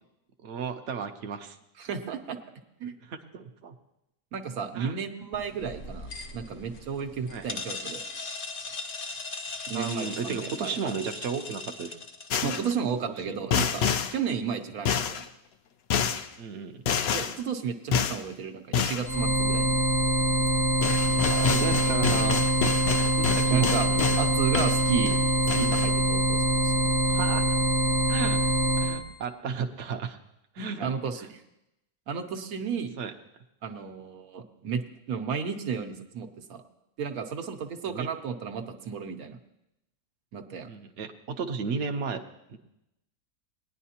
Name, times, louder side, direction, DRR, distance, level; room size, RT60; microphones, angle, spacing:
voice 1, 0.4-1.6 3.0-3.7 4.7-5.0 7.3-7.5 9.7-12.0 13.0-13.4 16.4-16.8 21.1-22.4 23.1-24.0 27.1-27.6 28.1-28.5 28.8-30.2 30.5-30.9 33.0-33.1 37.9-38.1 40.7-42.2 42.5-42.6, right 6 dB, 60° right, 4 dB, 0.9 m, -34 dB
voice 2, 1.8-2.4 2.8-3.0 4.3-8.0 9.7-10.9 12.4-13.9 14.1-15.2 17.1-19.8 23.5-23.9 24.2-25.2 25.6-26.8 30.6-31.3 32.1-32.9 33.6-34.8 35.1-36.6 37.0-39.4 40.3-40.7, right 6 dB, 80° right, 5 dB, 1.3 m, -32 dB
sound 1, 5.3-12.8, left 3 dB, 45° left, 0.9 m, -39 dB
sound 2, 12.3-12.7 13.5-14.2 14.9-15.3 15.9-16.3 16.9-17.4 17.9-18.2 18.7-19.1 20.5-20.6 20.8-24.3 24.5-25.2 25.5-25.9, left 7 dB, 65° left, 0.6 m, -28 dB
sound 3, 19.0-29.0, right 1 dB, 20° left, 0.6 m, -24 dB
19.0 x 10.0 x 2.8 m, 0.86 s
omnidirectional pair, 1.5 m